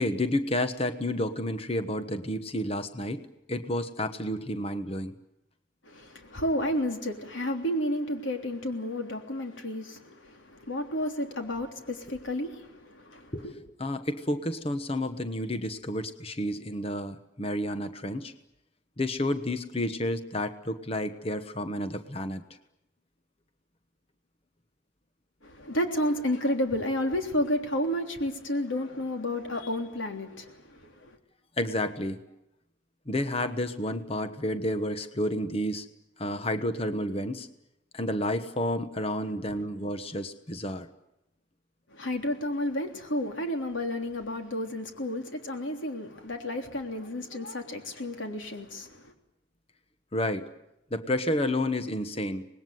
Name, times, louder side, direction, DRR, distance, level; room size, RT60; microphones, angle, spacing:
voice 1, 0.0-5.2 13.3-18.3 19.0-22.4 31.6-32.2 33.1-35.9 36.2-37.5 37.9-40.9 50.1-50.5 50.9-52.5, left 1 dB, 30° left, 1.2 m, -30 dB
voice 2, 5.9-10.1 10.7-12.7 12.9-13.2 25.4-30.5 41.9-48.9, left 1 dB, 85° left, 3.4 m, -31 dB
25.5 x 20.0 x 9.4 m
head